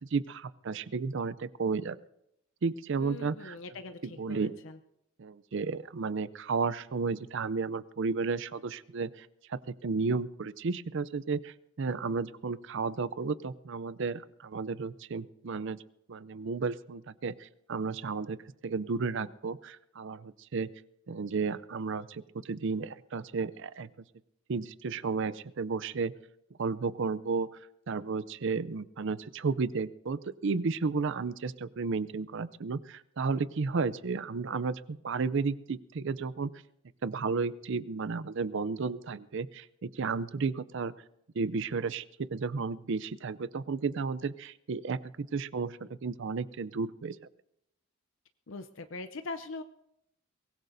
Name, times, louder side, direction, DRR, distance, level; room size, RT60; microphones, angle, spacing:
voice 1, 0.0-2.0 2.6-3.6 4.0-4.6 5.2-15.8 16.1-20.7 21.1-23.9 24.5-26.1 26.6-27.5 27.9-36.5 37.0-40.9 41.4-47.2, right 4 dB, 60° right, 17 dB, 0.5 m, -33 dB
voice 2, 3.0-4.8 48.5-49.6, left 3 dB, 65° left, 9 dB, 0.6 m, -42 dB
23.0 x 19.0 x 2.7 m, 0.82 s
head